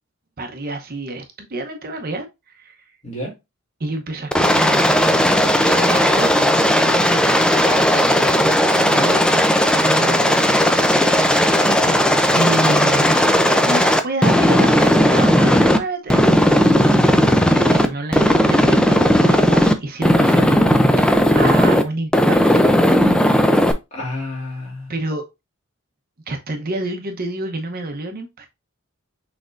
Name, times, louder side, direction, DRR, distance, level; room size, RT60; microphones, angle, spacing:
voice 1, 0.4-2.9 3.8-8.1 8.9-10.6 10.8-11.6 12.3-16.3 16.6-22.7 24.9-25.2 26.3-28.5, right 2 dB, 45° right, 0.8 m, -29 dB
voice 2, 3.0-3.3 8.8-9.1 11.4-12.0 23.9-24.9, left 1 dB, 35° left, 2.7 m, -30 dB
Aircraft, 4.3-15.8 16.1-17.9 18.1-19.7 20.0-21.8 22.1-23.7, equal, 5° left, 0.4 m, -15 dB
6.2 x 3.4 x 2.5 m
head